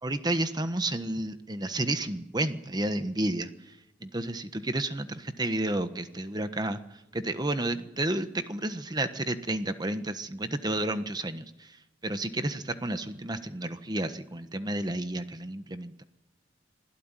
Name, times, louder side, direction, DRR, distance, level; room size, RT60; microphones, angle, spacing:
voice 1, 0.0-3.5 4.0-6.8 7.1-11.5 12.0-16.0, right 1 dB, 20° right, 10 dB, 1.3 m, -31 dB
26.0 x 17.0 x 9.2 m, 0.95 s
head